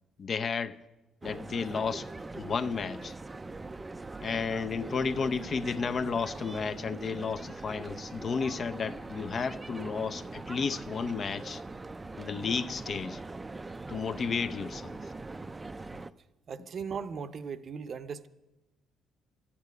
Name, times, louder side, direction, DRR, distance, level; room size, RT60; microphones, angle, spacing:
voice 1, 0.2-0.8 1.2-2.1 2.3-3.1 4.2-11.6 12.2-13.2 13.9-15.0, left 5 dB, 45° left, 0.6 m, -32 dB
sound 1, 1.2-16.1, right 3 dB, 20° right, 0.4 m, -42 dB
voice 2, 16.5-18.3, right 6 dB, 50° right, 0.7 m, -38 dB
12.0 x 8.6 x 9.5 m
cardioid pair, 90°, 0 cm